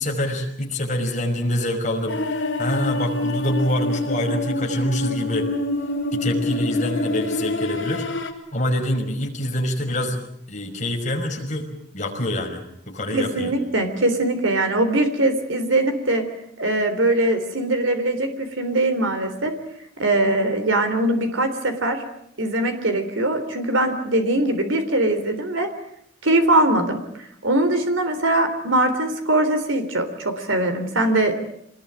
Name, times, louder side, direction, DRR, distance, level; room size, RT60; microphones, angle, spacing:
voice 1, 0.0-5.5 6.1-8.0 8.5-10.2 10.5-11.7 11.9-13.5, left 1 dB, 40° left, 1 dB, 5.5 m, -25 dB
sound 1, 2.1-8.3, left 2 dB, 70° left, 4.3 m, -26 dB
voice 2, 13.1-16.2 16.6-19.5 20.0-22.0 22.4-25.7 26.2-31.4, right 1 dB, 85° right, 7 dB, 3.6 m, -21 dB
26.0 x 20.0 x 8.9 m, 0.72 s
head